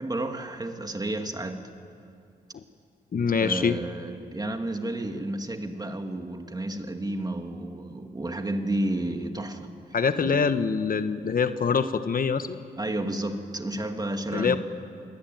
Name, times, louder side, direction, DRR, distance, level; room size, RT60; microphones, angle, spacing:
voice 1, 0.0-1.6 3.4-9.7 10.2-10.4 12.8-14.6, right 1 dB, 20° right, 5 dB, 2.5 m, -31 dB
voice 2, 3.1-3.8 9.9-12.6 14.3-14.6, left 6 dB, 55° left, 10 dB, 1.1 m, -24 dB
29.0 x 20.0 x 9.3 m, 2.4 s
cardioid pair, 70°, 18 cm